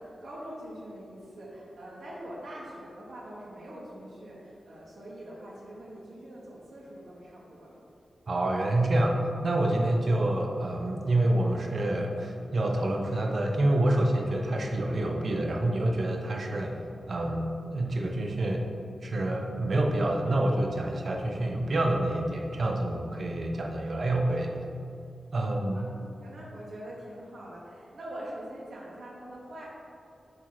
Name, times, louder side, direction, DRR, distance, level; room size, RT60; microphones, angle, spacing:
voice 1, 0.0-7.8 25.7-25.8 26.2-29.7, right 1 dB, 80° right, -6 dB, 1.2 m, -43 dB
voice 2, 8.3-16.7 17.1-18.6 19.0-24.5 25.3-25.9, right 1 dB, 60° right, 1 dB, 0.7 m, -27 dB
7.7 x 2.9 x 4.7 m, 2.5 s
cardioid pair, 75°, 0 cm